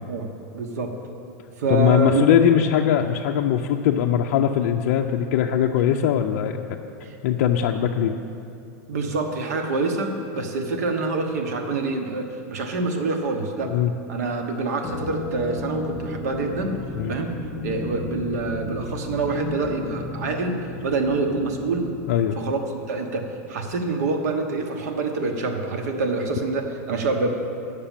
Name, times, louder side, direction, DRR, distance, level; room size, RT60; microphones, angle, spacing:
voice 1, 0.5-0.9 1.6-2.2 7.0-7.1 8.9-13.7 14.1-16.8 17.1-17.4 17.6-21.9 22.4-27.3, right 3 dB, 80° right, 4 dB, 1.2 m, -26 dB
voice 2, 1.7-6.6 7.2-8.1 13.6-13.9 17.0-17.1 22.1-22.4, left 9 dB, 55° left, 2 dB, 0.4 m, -20 dB
sound 1, 14.8-23.5, left 2 dB, 20° left, 1.6 m, -35 dB
9.9 x 6.7 x 7.3 m, 2.6 s
supercardioid pair, 175°, 9 cm